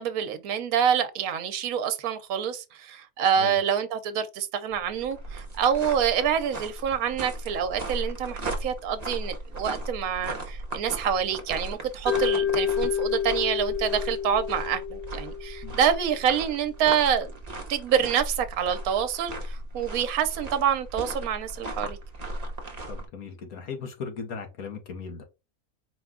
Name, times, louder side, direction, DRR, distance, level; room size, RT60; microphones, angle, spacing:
voice 1, 0.0-17.3 17.7-22.0, right 8 dB, 70° right, 1.2 m, -27 dB
sound 1, 4.7-23.1, right 2 dB, 30° right, 0.9 m, -37 dB
Mallet percussion, 12.1-16.2, left 9 dB, 55° left, 0.6 m, -29 dB
voice 2, 22.9-25.2, left 5 dB, 70° left, 1.4 m, -37 dB
4.8 x 2.3 x 3.5 m
omnidirectional pair, 1.6 m